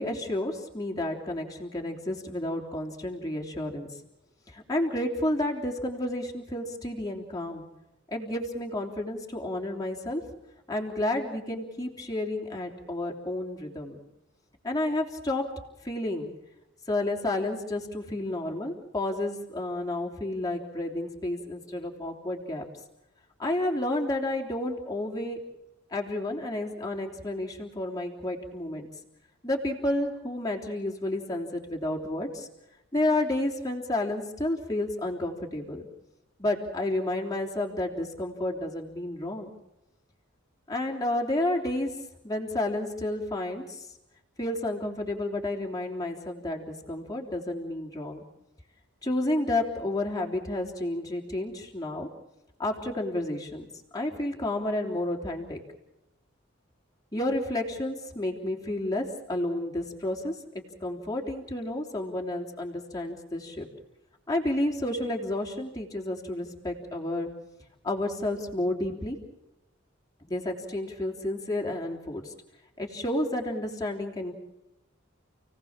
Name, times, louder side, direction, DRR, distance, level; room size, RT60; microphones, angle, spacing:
voice 1, 0.0-3.9 4.5-7.6 8.1-10.2 10.7-14.0 14.6-15.5 15.8-16.3 16.9-22.6 23.4-25.4 25.9-28.9 29.4-32.5 32.9-35.9 36.4-39.5 40.7-41.9 42.2-43.9 44.4-48.2 49.0-52.1 52.6-53.7 53.9-55.6 57.1-63.7 64.3-67.3 67.8-69.2 70.3-72.3 72.8-74.3, left 1 dB, 20° left, -1 dB, 3.2 m, -31 dB
29.5 x 18.0 x 7.3 m, 0.93 s
head